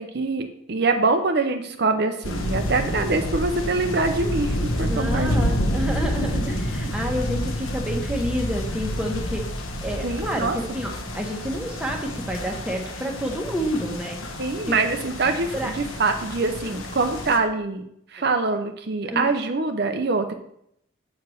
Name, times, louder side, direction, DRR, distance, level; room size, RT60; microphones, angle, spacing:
voice 1, 0.0-5.5 10.0-10.6 14.4-17.8 18.1-20.3, right 3 dB, 50° right, 6 dB, 0.6 m, -24 dB
sound 1, 2.2-17.4, left 1 dB, 90° left, 1.3 m, -29 dB
voice 2, 4.8-9.4 9.8-14.2 14.7-14.8 15.5-15.7 19.1-19.3, equal, 5° right, 0 dB, 1.2 m, -29 dB
8.2 x 4.7 x 6.3 m, 0.74 s
head